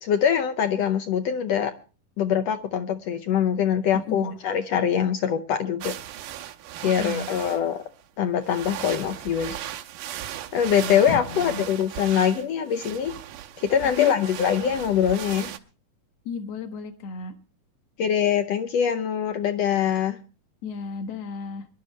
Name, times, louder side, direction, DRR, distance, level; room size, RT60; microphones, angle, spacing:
voice 1, 0.0-1.7 2.2-6.0 6.8-7.8 8.2-9.7 10.5-13.2 13.6-15.5 18.0-20.2, left 8 dB, 75° left, 8 dB, 1.5 m, -23 dB
sound 1, 5.8-7.8 8.4-15.6, right 12 dB, 85° right, 2.5 m, -37 dB
voice 2, 10.8-11.7 14.0-14.1 16.3-17.3 20.6-21.7, left 4 dB, 55° left, 6 dB, 2.3 m, -33 dB
24.5 x 11.5 x 3.2 m, 0.36 s
omnidirectional pair, 3.8 m